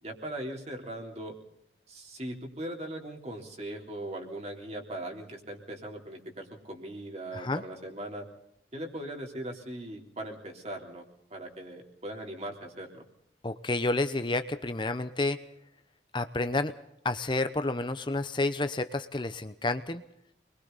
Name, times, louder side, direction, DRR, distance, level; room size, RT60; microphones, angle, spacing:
voice 1, 0.0-1.3 1.9-8.3 8.7-11.0 11.3-13.0, right 1 dB, 40° right, 1 dB, 3.7 m, -39 dB
voice 2, 13.4-15.4 16.1-16.7 17.0-20.0, left 2 dB, 25° left, 10 dB, 0.8 m, -30 dB
28.5 x 22.0 x 4.1 m, 0.78 s
head